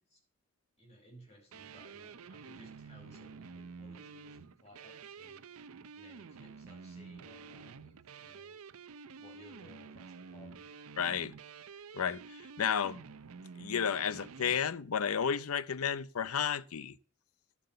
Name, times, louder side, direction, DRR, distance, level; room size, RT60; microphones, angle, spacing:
voice 1, 0.8-5.4 5.9-8.6 9.2-10.8, left 1 dB, 30° left, 5.2 m, -59 dB
sound 1, 1.5-14.6, right 5 dB, 85° right, 0.6 m, -50 dB
voice 2, 11.0-11.3 11.9-13.0 13.6-17.0, left 7 dB, 85° left, 0.6 m, -32 dB
11.5 x 7.8 x 6.7 m
head